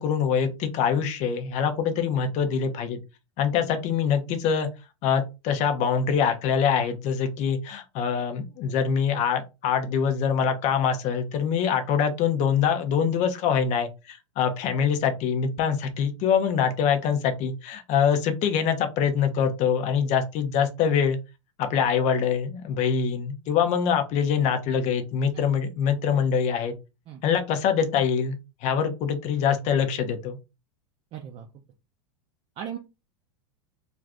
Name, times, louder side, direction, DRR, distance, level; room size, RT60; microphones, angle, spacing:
voice 1, 0.0-3.0 3.4-4.7 5.0-21.2 21.6-26.7 27.2-28.4 28.6-30.4, left 7 dB, 45° left, 7 dB, 0.6 m, -24 dB
voice 2, 31.1-31.5 32.6-32.8, right 9 dB, 35° right, 3 dB, 0.5 m, -37 dB
2.5 x 2.4 x 3.3 m, 0.27 s
hypercardioid pair, 100°, 17 cm